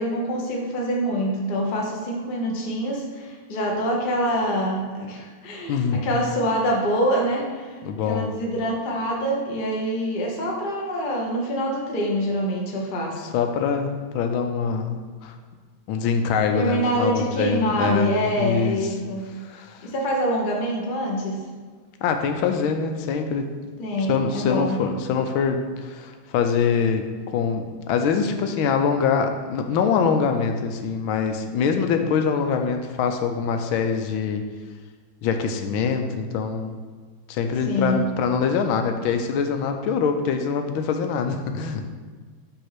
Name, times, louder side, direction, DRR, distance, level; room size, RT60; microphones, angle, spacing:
voice 1, 0.0-13.2 16.5-19.3 19.8-21.4 23.8-24.8 37.7-38.0, equal, 40° left, -1 dB, 0.8 m, -25 dB
voice 2, 5.7-6.1 7.8-8.3 13.3-15.3 15.9-18.8 19.4-19.9 22.0-23.5 24.1-34.4 35.2-36.8 37.3-41.9, left 6 dB, 85° left, 5 dB, 1.4 m, -24 dB
5.6 x 3.6 x 5.8 m, 1.5 s
omnidirectional pair, 2.2 m